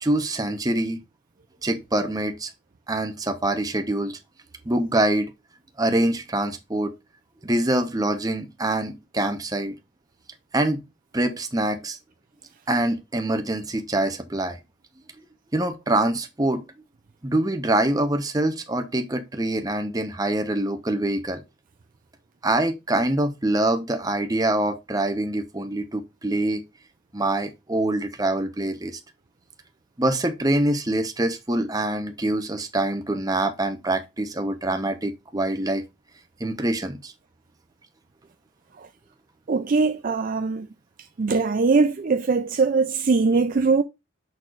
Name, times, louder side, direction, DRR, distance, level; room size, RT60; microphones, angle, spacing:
voice 1, 0.0-1.0 1.6-2.5 2.9-4.2 4.7-5.3 5.8-6.9 7.4-9.7 10.5-10.8 11.1-12.0 12.7-14.6 15.5-16.6 17.2-21.4 22.4-26.6 27.1-29.0 30.0-35.8 36.4-37.1, right 1 dB, 20° right, 0.9 m, -25 dB
voice 2, 39.5-40.7 41.2-43.8, right 4 dB, 40° right, 0.4 m, -21 dB
6.3 x 6.3 x 2.5 m
head